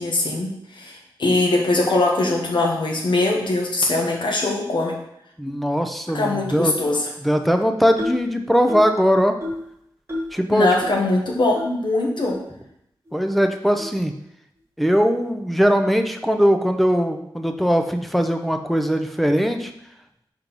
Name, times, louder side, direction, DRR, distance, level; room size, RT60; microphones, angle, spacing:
voice 1, 0.0-4.9 6.1-7.1 10.5-12.4, left 2 dB, 65° left, 0 dB, 1.4 m, -21 dB
voice 2, 5.4-6.7 7.2-9.3 10.3-10.7 13.1-14.1 14.8-19.7, equal, ahead, 5 dB, 0.6 m, -20 dB
sound 1, 8.0-8.3 8.7-9.0 9.4-9.7 10.1-10.4 10.8-10.9 11.5-11.7 12.3-12.4 13.1-13.2 13.8-14.0, left 1 dB, 30° right, 1.5 m, -30 dB
5.2 x 4.6 x 5.3 m, 0.77 s
wide cardioid pair, 140°, 9 cm